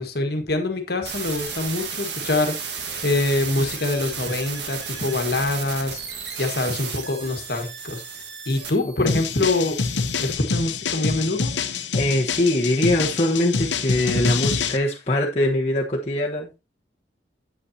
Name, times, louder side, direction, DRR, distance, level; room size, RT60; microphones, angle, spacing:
voice 1, 0.0-6.0 6.4-8.0 8.4-9.8 10.1-11.5, left 2 dB, 60° left, 1.5 m, -25 dB
sound 1, 1.1-10.3, right 6 dB, 70° right, 1.5 m, -34 dB
sound 2, 9.1-14.8, left 5 dB, 85° left, 0.9 m, -26 dB
voice 2, 11.9-16.6, left 1 dB, 35° left, 1.1 m, -22 dB
8.6 x 8.1 x 2.7 m
head